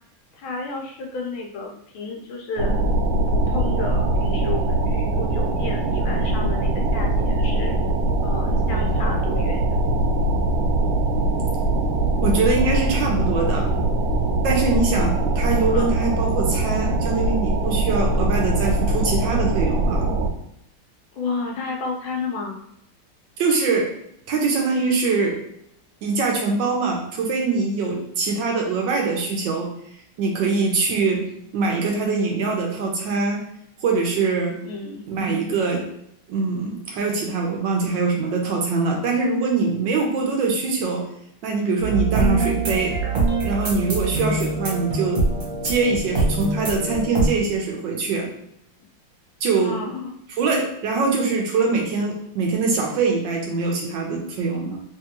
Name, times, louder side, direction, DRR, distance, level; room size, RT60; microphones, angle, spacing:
voice 1, 0.3-2.7 3.3-7.8 8.2-9.6 15.7-16.0 21.1-22.6 30.5-30.7 34.6-35.1 49.6-50.1, left 3 dB, 80° left, 1 dB, 1.5 m, -32 dB
sound 1, 2.6-20.3, right 2 dB, 90° right, 1.5 m, -22 dB
voice 2, 12.2-13.7 14.4-20.1 23.4-23.9 24.3-25.4 26.0-29.7 30.2-31.3 31.5-33.4 33.8-34.6 35.1-35.8 36.3-41.1 41.4-42.9 43.4-45.2 45.6-48.3 49.4-49.7 50.3-54.8, right 4 dB, 70° right, 0 dB, 1.2 m, -23 dB
sound 2, 41.8-47.3, right 3 dB, 45° right, 1.3 m, -24 dB
3.5 x 3.2 x 2.9 m, 0.75 s
omnidirectional pair, 2.3 m